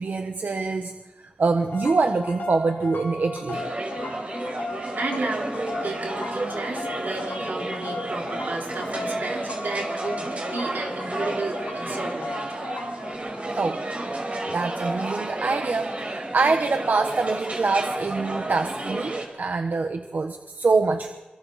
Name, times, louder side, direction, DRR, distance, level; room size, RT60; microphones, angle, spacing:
voice 1, 0.0-3.6 13.5-13.8 14.5-21.1, right 4 dB, 70° right, 6 dB, 1.1 m, -25 dB
sound 1, 1.7-13.1, left 2 dB, 90° left, 3.0 m, -36 dB
sound 2, 3.5-19.2, right 1 dB, 45° right, 4.8 m, -32 dB
voice 2, 5.0-12.5, right 3 dB, 90° right, -1 dB, 4.3 m, -32 dB
26.5 x 23.5 x 4.2 m, 1.2 s
wide cardioid pair, 85°, 3 cm